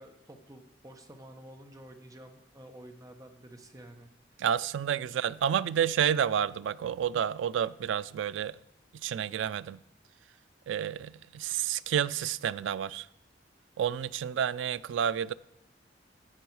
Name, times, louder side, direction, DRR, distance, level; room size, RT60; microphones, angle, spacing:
voice 1, 0.0-4.1, right 1 dB, 20° right, 1.0 m, -50 dB
voice 2, 4.4-8.6 9.0-9.8 10.7-13.1 13.8-15.3, right 9 dB, 90° right, 0.3 m, -30 dB
15.0 x 5.5 x 4.7 m
head